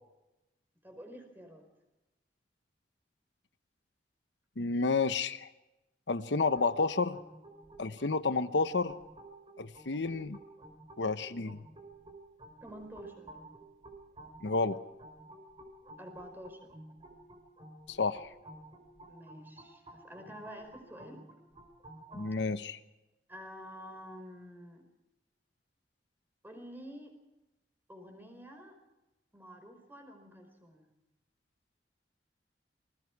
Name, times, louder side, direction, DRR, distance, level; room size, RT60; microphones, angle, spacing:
voice 1, 0.8-1.7 12.6-13.3 16.0-16.7 19.1-21.2 23.3-24.8 26.4-27.1 27.9-28.8 29.3-30.8, equal, 10° right, 5 dB, 4.8 m, -49 dB
voice 2, 4.6-5.5 6.1-7.2 7.8-8.9 9.6-10.4 11.0-11.6 14.4-14.8 17.9-18.3 22.1-22.8, left 4 dB, 85° left, 12 dB, 1.0 m, -30 dB
sound 1, 6.5-22.3, right 2 dB, 30° right, 4.4 m, -53 dB
28.0 x 20.5 x 4.7 m, 1.0 s
head